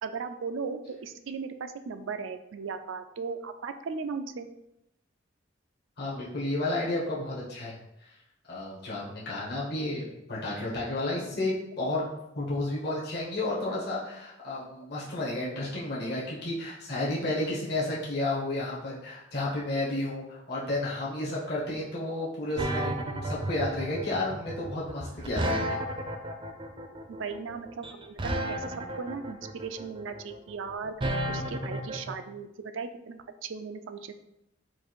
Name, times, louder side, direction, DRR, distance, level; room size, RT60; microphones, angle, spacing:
voice 1, 0.0-4.5 27.2-28.2 28.5-30.9 31.3-34.1, right 5 dB, 80° right, 8 dB, 0.4 m, -37 dB
voice 2, 6.0-7.7 8.5-12.1 12.3-25.8, left 2 dB, 55° left, -6 dB, 1.2 m, -32 dB
sound 1, 22.6-32.1, right 1 dB, 25° right, 0.5 m, -32 dB
4.6 x 2.5 x 4.5 m, 0.84 s
head